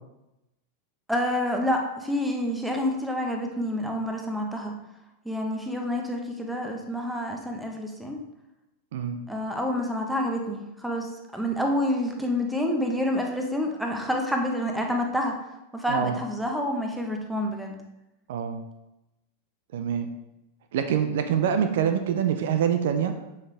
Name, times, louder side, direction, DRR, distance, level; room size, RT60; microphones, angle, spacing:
voice 1, 1.1-4.7 5.2-8.2 9.3-15.4 15.7-17.8, left 1 dB, 5° right, 2 dB, 1.2 m, -28 dB
voice 2, 8.9-9.2 15.9-16.2 18.3-18.6 19.7-20.1 20.7-23.1, right 8 dB, 65° right, 7 dB, 0.6 m, -25 dB
7.2 x 5.8 x 3.4 m, 0.93 s
hypercardioid pair, 95°, 0 cm